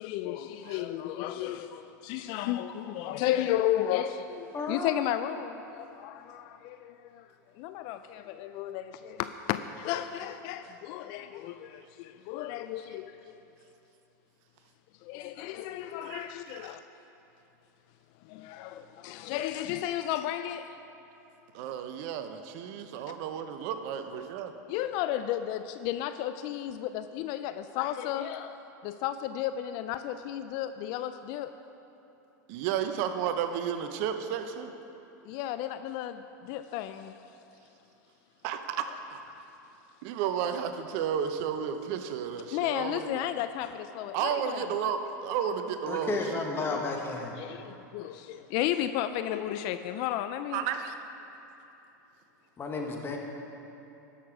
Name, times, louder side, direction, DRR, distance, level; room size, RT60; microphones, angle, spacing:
voice 1, 0.0-7.2 7.6-13.1 15.0-16.8 18.3-20.8 24.7-28.6 28.8-31.5 35.3-37.1 42.5-44.7 46.7-46.9 47.4-50.6, left 12 dB, 50° left, 10 dB, 0.4 m, -33 dB
voice 2, 4.5-4.9 45.9-47.4 52.6-53.2, left 3 dB, 25° left, 1 dB, 1.5 m, -32 dB
voice 3, 16.0-16.8 21.5-24.5 32.5-34.7 38.4-39.2 40.0-43.2 44.1-46.8 50.5-50.9, right 8 dB, 55° right, 8 dB, 0.7 m, -33 dB
13.0 x 6.7 x 4.9 m, 2.9 s
hypercardioid pair, 105°, 10 cm